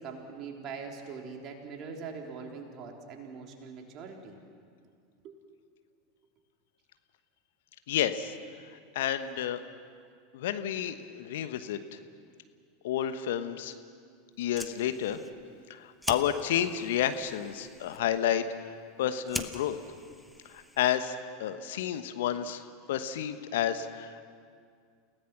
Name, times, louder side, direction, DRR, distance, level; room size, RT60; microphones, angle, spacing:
voice 1, 0.0-4.4 5.2-5.4, right 5 dB, 45° right, 1 dB, 3.5 m, -42 dB
voice 2, 7.9-8.3 8.9-9.6 10.3-11.8 12.8-13.7 14.4-15.2 15.7-18.4 19.0-19.7 20.5-21.1 21.4-22.6 22.9-24.2, left 10 dB, 65° left, 10 dB, 1.1 m, -30 dB
Fire, 14.3-21.2, equal, ahead, 1.4 m, -44 dB
29.0 x 17.5 x 6.0 m, 2.2 s
figure-of-eight pair, 85°, 0 cm